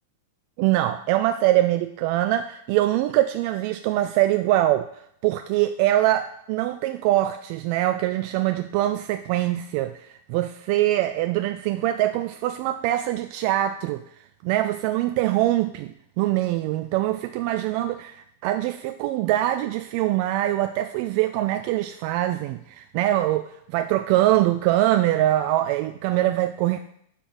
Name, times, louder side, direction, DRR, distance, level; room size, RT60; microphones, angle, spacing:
voice 1, 0.6-4.9 5.2-14.0 14.4-26.8, right 14 dB, 45° right, 9 dB, 0.3 m, -23 dB
5.7 x 5.3 x 6.2 m, 0.71 s
figure-of-eight pair, 95°, 0 cm